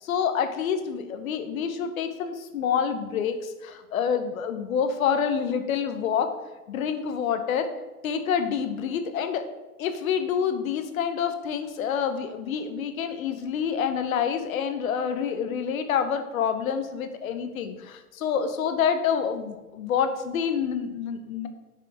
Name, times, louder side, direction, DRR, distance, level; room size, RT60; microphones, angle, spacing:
voice 1, 0.0-6.3 6.7-7.7 8.0-9.5 9.8-21.5, left 7 dB, 60° left, 8 dB, 0.9 m, -27 dB
5.7 x 3.7 x 4.8 m, 1.1 s
hypercardioid pair, 130°, 47 cm